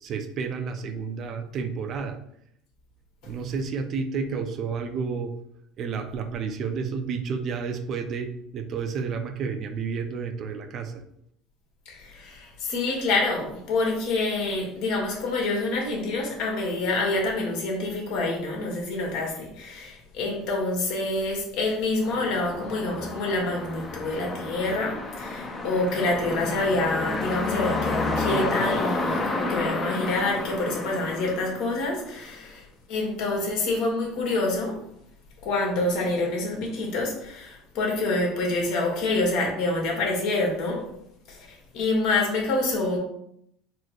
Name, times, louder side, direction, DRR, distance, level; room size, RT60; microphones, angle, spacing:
voice 1, 0.0-2.2 3.2-5.3 5.8-10.9, right 5 dB, 45° right, 7 dB, 0.5 m, -31 dB
voice 2, 11.9-32.6 32.9-34.8 35.4-40.9 41.3-43.0, left 2 dB, 65° left, 0 dB, 1.5 m, -27 dB
sound 1, 22.0-32.3, left 2 dB, 25° left, 0.7 m, -30 dB
4.3 x 2.1 x 4.5 m, 0.73 s
supercardioid pair, 110°, 0 cm